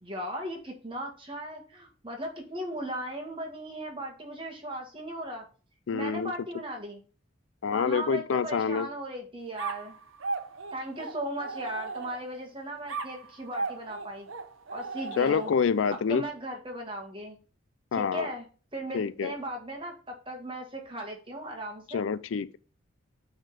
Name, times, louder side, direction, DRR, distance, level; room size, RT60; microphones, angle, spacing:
voice 1, 0.0-5.5 5.9-7.0 7.7-10.0 10.7-14.3 14.7-15.5 16.1-17.4 17.9-22.1, right 1 dB, 25° right, 1.8 m, -37 dB
voice 2, 5.9-6.3 7.6-8.9 15.2-16.2 17.9-18.3 18.9-19.3 21.9-22.5, left 6 dB, 70° left, 0.4 m, -27 dB
sound 1, 9.6-12.4 12.9-15.8, right 4 dB, 75° right, 0.8 m, -37 dB
9.0 x 3.7 x 5.0 m
head